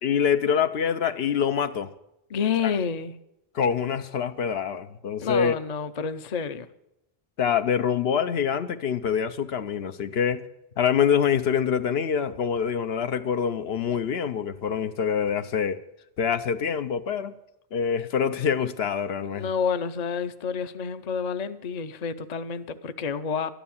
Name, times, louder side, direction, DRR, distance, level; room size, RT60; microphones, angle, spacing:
voice 1, 0.0-1.9 2.6-2.8 3.5-5.5 7.4-10.5 10.8-15.8 16.2-17.3 17.7-19.5, left 7 dB, 75° left, 0.9 m, -25 dB
voice 2, 2.3-3.1 5.2-6.7 19.3-23.5, left 6 dB, 45° left, 0.7 m, -29 dB
12.5 x 10.5 x 7.1 m
omnidirectional pair, 1.0 m